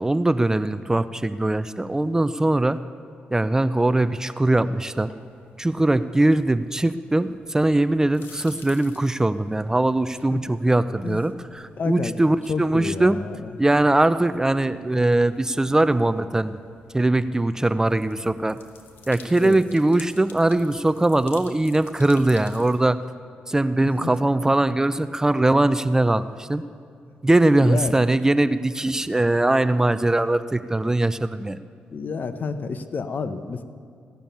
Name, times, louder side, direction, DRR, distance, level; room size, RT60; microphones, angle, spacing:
voice 1, 0.0-2.8 3.3-5.1 5.6-13.2 13.6-16.6 16.9-18.6 19.1-23.0 23.5-26.6 27.2-31.6, right 2 dB, 15° right, 14 dB, 0.4 m, -21 dB
sound 1, 5.1-22.8, left 4 dB, 75° left, 1.5 m, -51 dB
voice 2, 11.8-12.1 12.5-13.5 19.4-19.6 24.0-24.1 27.6-27.9 31.9-33.6, left 5 dB, 50° left, 11 dB, 0.9 m, -29 dB
16.0 x 7.0 x 9.1 m, 2.2 s
cardioid pair, 65°, 4 cm